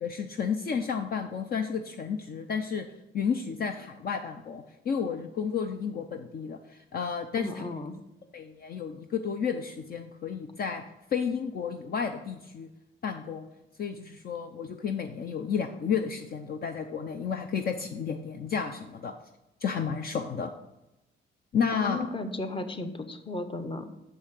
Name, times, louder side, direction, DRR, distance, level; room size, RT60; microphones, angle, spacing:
voice 1, 0.0-2.9 3.1-7.5 8.3-10.8 11.1-12.7 13.0-13.4 13.8-19.1 19.6-20.5 21.5-22.0, left 6 dB, 50° left, 6 dB, 0.6 m, -31 dB
voice 2, 7.3-7.9 21.7-23.8, left 2 dB, 25° left, 8 dB, 1.0 m, -35 dB
6.7 x 5.6 x 6.3 m, 0.94 s
cardioid pair, 90°, 20 cm